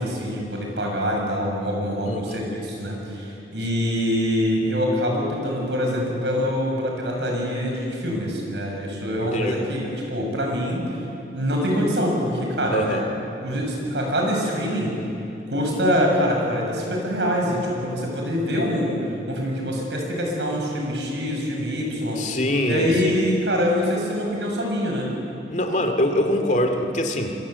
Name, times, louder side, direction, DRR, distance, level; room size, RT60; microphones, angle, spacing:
voice 1, 0.0-10.9 11.3-13.0 13.4-15.0 15.5-19.0 19.3-25.1, equal, 80° right, 0 dB, 6.9 m, -24 dB
voice 2, 2.1-2.4 9.2-9.6 12.7-13.0 22.2-23.2 25.5-27.3, left 1 dB, 45° left, 5 dB, 2.3 m, -24 dB
27.0 x 23.0 x 8.2 m, 2.8 s
head